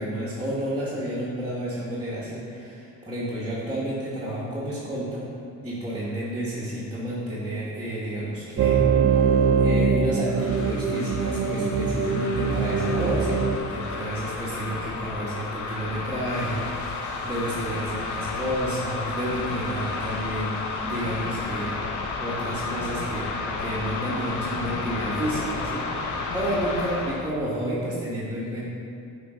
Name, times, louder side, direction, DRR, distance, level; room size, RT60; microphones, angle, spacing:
voice 1, 0.0-5.3 5.6-9.3 9.6-20.6 20.8-21.8 22.2-23.3 23.6-28.7, right 1 dB, 15° right, -9 dB, 1.5 m, -31 dB
sound 1, 8.6-13.6, right 5 dB, 65° right, 0.7 m, -22 dB
sound 2, 10.3-27.3, left 3 dB, 80° left, 0.8 m, -32 dB
8.3 x 3.6 x 5.0 m, 2.6 s
cardioid pair, 90°, 30 cm